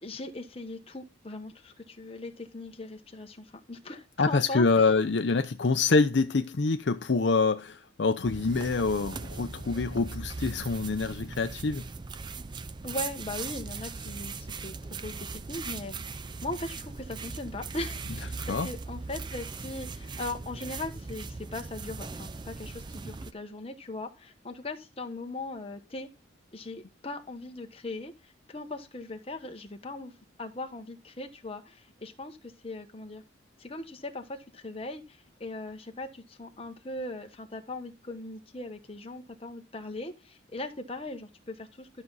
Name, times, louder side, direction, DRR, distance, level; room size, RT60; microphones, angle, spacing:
voice 1, 0.0-4.9 12.8-14.8 15.0-26.1 26.5-30.1 30.4-33.2 33.6-41.9, left 2 dB, 30° left, 1.1 m, -39 dB
voice 2, 4.2-11.8 18.4-18.7, left 4 dB, 60° left, 0.6 m, -26 dB
sound 1, 8.2-23.3, right 4 dB, 25° right, 0.4 m, -39 dB
12.0 x 6.1 x 4.0 m
head